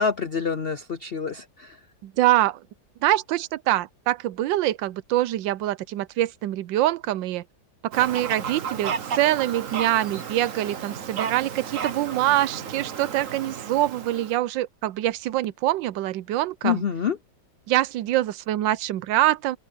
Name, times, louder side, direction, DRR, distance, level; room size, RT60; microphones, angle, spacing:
voice 1, 0.0-1.7 16.6-17.2, left 6 dB, 75° left, 0.5 m, -26 dB
voice 2, 2.0-2.6 3.0-7.4 7.8-16.8 17.7-19.6, right 14 dB, 85° right, 1.3 m, -24 dB
Fowl, 7.9-14.4, right 7 dB, 50° right, 1.4 m, -33 dB
open air
omnidirectional pair, 2.0 m